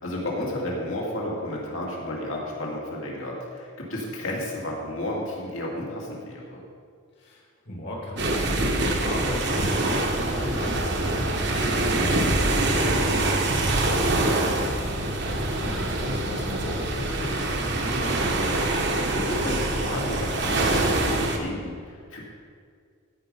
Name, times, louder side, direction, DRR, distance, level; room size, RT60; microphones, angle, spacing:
voice 1, 0.0-6.6 15.5-15.7 19.1-22.3, left 1 dB, 65° left, -3 dB, 2.5 m, -32 dB
voice 2, 7.2-18.7, left 1 dB, 50° left, -2 dB, 2.3 m, -37 dB
sound 1, 8.2-21.4, right 2 dB, 55° right, 1.1 m, -25 dB
15.0 x 5.1 x 5.5 m, 2.1 s
head